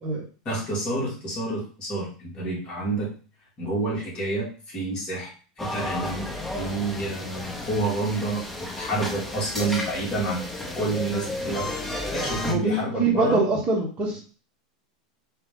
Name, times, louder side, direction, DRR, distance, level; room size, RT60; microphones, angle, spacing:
voice 1, 0.5-3.1 3.6-5.3 5.6-6.3 6.5-10.5 10.7-11.7 12.1-13.5, right 2 dB, 30° left, -4 dB, 2.2 m, -28 dB
sound 1, 5.6-12.5, left 1 dB, 5° left, 0.9 m, -33 dB
voice 2, 12.4-14.2, right 3 dB, 30° right, -1 dB, 1.3 m, -24 dB
3.8 x 3.3 x 3.7 m, 0.38 s
supercardioid pair, 125°, 4 cm